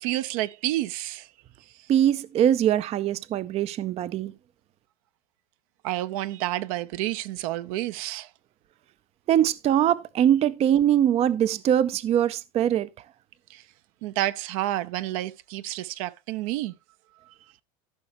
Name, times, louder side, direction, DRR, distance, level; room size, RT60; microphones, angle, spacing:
voice 1, 0.0-1.3 5.8-8.3 13.5-13.6 14.0-16.7, right 15 dB, 65° right, 0.7 m, -29 dB
voice 2, 1.9-4.3 9.3-12.9, right 10 dB, 35° right, 0.5 m, -22 dB
14.5 x 5.6 x 3.0 m
hypercardioid pair, 105°, 19 cm